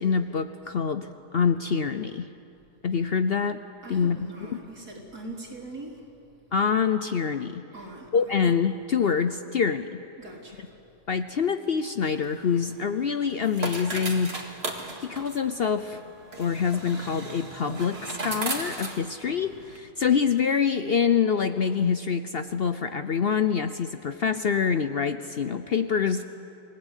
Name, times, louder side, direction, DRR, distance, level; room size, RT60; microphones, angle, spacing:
voice 1, 0.0-2.3 2.8-3.6 3.9-4.2 4.5-4.6 6.5-7.6 8.1-10.0 11.1-14.4 15.0-16.0 16.4-26.2, left 6 dB, 55° left, 10 dB, 0.7 m, -25 dB
voice 2, 3.8-6.5 7.7-8.3 10.2-10.8, right 2 dB, 85° right, -1 dB, 4.3 m, -42 dB
sound 1, 12.1-19.8, right 2 dB, 40° right, 2.4 m, -37 dB
27.5 x 19.0 x 8.2 m, 2.6 s
omnidirectional pair, 1.6 m